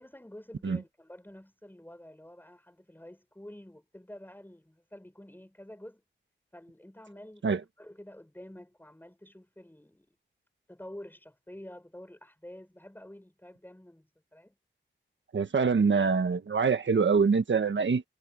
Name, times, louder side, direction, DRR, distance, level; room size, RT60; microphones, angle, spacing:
voice 1, 0.0-6.0 6.5-10.1 10.7-14.6 15.4-15.5, left 1 dB, 10° left, 6.7 m, -49 dB
voice 2, 15.3-18.0, right 5 dB, 75° right, 1.6 m, -24 dB
wide cardioid pair, 90°, 19 cm